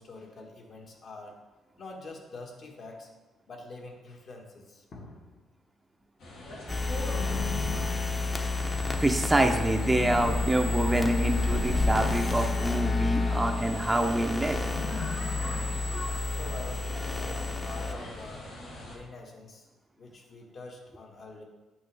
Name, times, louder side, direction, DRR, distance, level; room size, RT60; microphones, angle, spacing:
voice 1, 0.0-1.3 1.8-3.1 3.5-5.4 7.8-8.2 11.3-11.7 16.2-18.4 18.9-19.7 20.0-21.4, left 3 dB, 55° left, 1 dB, 1.5 m, -45 dB
sound 1, 6.2-19.0, left 1 dB, 85° left, 2.3 m, -42 dB
sound 2, 6.7-17.9, left 3 dB, 20° left, 0.8 m, -30 dB
sound 3, 7.1-8.6 9.8-10.8 11.6-13.2 14.5-16.0, left 5 dB, 70° left, 0.8 m, -39 dB
voice 2, 9.0-14.6 15.9-16.0, right 1 dB, 15° right, 3 dB, 0.6 m, -26 dB
8.9 x 5.9 x 3.4 m, 1.2 s
cardioid pair, 90°, 0 cm